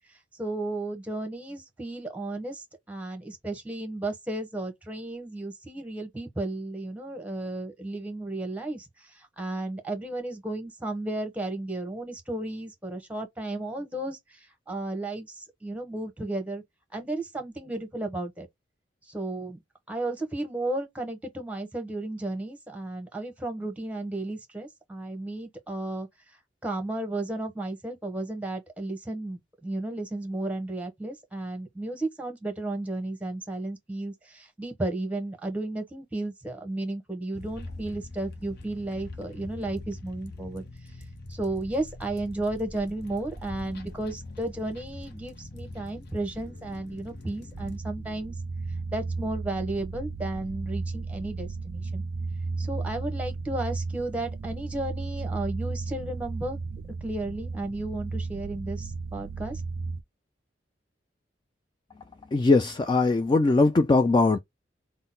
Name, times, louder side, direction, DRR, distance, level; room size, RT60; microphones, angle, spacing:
voice 1, 0.4-16.6 16.9-18.5 19.1-19.6 19.9-26.1 26.6-40.6 41.3-48.3 48.9-52.0 52.6-56.6 57.0-59.6, right 2 dB, 10° right, 1.1 m, -33 dB
sound 1, 37.3-47.8, left 2 dB, 60° left, 0.8 m, -43 dB
sound 2, 47.5-60.0, right 4 dB, 55° right, 0.4 m, -34 dB
voice 2, 62.3-64.4, left 3 dB, 25° left, 0.3 m, -20 dB
3.8 x 2.1 x 3.8 m
head